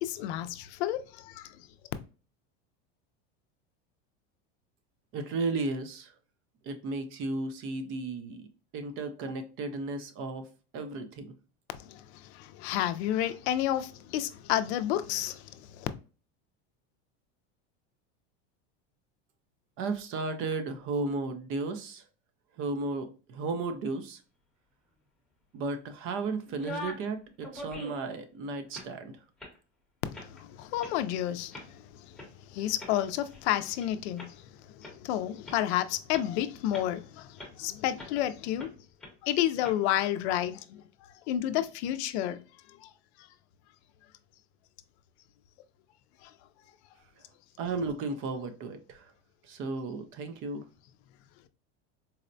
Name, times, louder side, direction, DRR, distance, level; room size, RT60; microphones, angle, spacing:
voice 1, 0.0-1.4 11.9-12.0 12.3-15.4 15.8-15.9 30.4-31.6 32.5-34.4 34.8-37.3 37.6-38.7 39.2-40.8 41.3-42.4, left 12 dB, 75° left, 0.5 m, -30 dB
voice 2, 5.1-6.1 6.6-10.5 10.7-11.3 19.8-22.0 22.6-24.2 25.5-29.1 47.6-49.1 49.4-50.7, right 3 dB, 40° right, 0.4 m, -34 dB
sound 1, 26.5-27.1 27.4-28.1 28.6-28.9 29.4-29.6 30.1-30.4 30.8-30.9 31.5-31.7 32.2-32.3 32.8-33.9 34.2-34.3 34.8-34.9 35.4-35.6 36.1-36.2 36.7-37.0 37.4-37.5 38.0-38.2 38.6-38.7 39.0-39.1 39.6-39.8, left 1 dB, ahead, 0.8 m, -42 dB
4.0 x 2.1 x 2.5 m
supercardioid pair, 145°, 34 cm